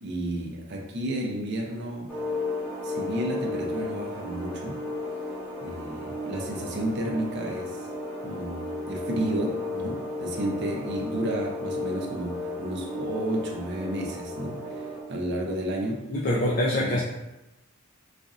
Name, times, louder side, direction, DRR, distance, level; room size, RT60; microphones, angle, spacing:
voice 1, 0.0-2.1 2.8-4.8 5.6-7.9 8.2-16.0 16.7-17.0, right 1 dB, 55° right, 0 dB, 0.5 m, -32 dB
sound 1, 2.1-15.0, left 2 dB, 5° left, 0.8 m, -34 dB
voice 2, 16.1-17.0, left 1 dB, 45° left, -5 dB, 0.4 m, -24 dB
4.1 x 2.5 x 2.4 m, 0.96 s
head